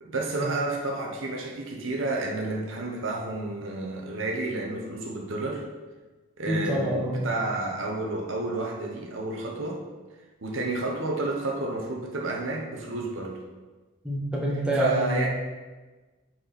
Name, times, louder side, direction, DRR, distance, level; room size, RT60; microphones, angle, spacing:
voice 1, 0.0-5.7 6.4-9.8 10.4-13.4 14.7-15.3, right 2 dB, 70° right, 0 dB, 1.0 m, -30 dB
voice 2, 6.5-7.2 14.0-15.2, right 1 dB, 5° right, -5 dB, 1.2 m, -26 dB
8.2 x 4.3 x 4.2 m, 1.3 s
head